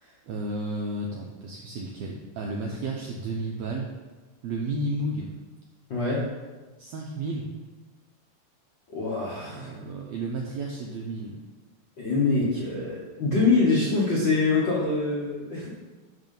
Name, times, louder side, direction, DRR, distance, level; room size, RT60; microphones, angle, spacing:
voice 1, 0.3-3.9 4.4-5.3 6.8-7.5 9.4-11.4, right 2 dB, 80° right, -1 dB, 1.5 m, -32 dB
voice 2, 5.9-6.2 8.9-9.8 12.0-15.7, left 3 dB, 55° left, -6 dB, 1.3 m, -24 dB
10.5 x 3.7 x 5.4 m, 1.3 s
omnidirectional pair, 3.8 m